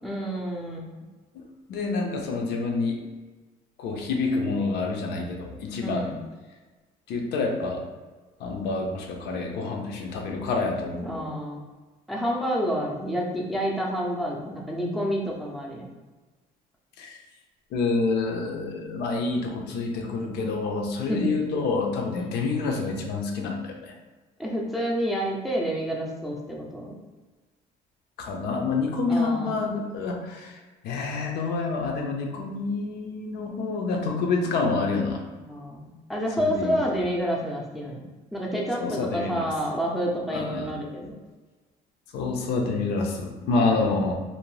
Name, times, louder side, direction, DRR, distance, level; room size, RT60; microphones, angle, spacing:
voice 1, 0.0-0.8 5.8-6.1 11.0-11.6 12.1-15.9 21.1-21.3 22.2-22.3 24.4-27.0 29.1-29.5 35.5-38.0 38.3-41.1 43.5-44.0, equal, ahead, -3 dB, 0.5 m, -29 dB
voice 2, 1.7-3.0 3.8-6.1 7.1-7.8 8.4-11.2 17.0-17.2 17.7-23.9 28.2-35.2 36.4-36.8 38.8-39.5 40.3-40.7 42.1-44.1, left 3 dB, 80° left, 1 dB, 0.5 m, -28 dB
2.7 x 2.0 x 3.1 m, 1.3 s
cardioid pair, 110°, 17 cm